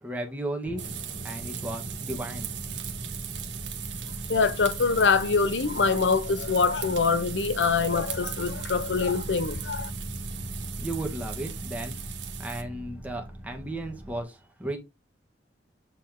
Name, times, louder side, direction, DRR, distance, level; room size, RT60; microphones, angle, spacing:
voice 1, 0.0-0.8 1.2-2.5 10.8-12.0 12.4-14.8, right 1 dB, 10° right, 1.4 m, -35 dB
sound 1, 0.6-14.2, right 1 dB, 60° left, 4.6 m, -39 dB
sound 2, 0.8-12.6, right 11 dB, 75° right, 1.3 m, -39 dB
voice 2, 4.3-9.9, left 4 dB, 75° left, 0.7 m, -24 dB
7.6 x 4.3 x 3.7 m
head